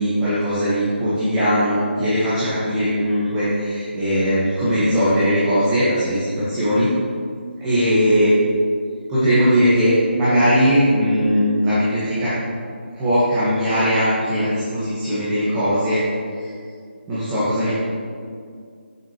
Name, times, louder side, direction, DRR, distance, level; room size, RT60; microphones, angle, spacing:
voice 1, 0.0-6.9 7.6-8.5 9.1-12.3 12.9-16.0 16.4-16.5 17.1-17.7, equal, 15° right, -13 dB, 2.0 m, -19 dB
9.9 x 7.8 x 3.2 m, 2.2 s
figure-of-eight pair, 160°, 6 cm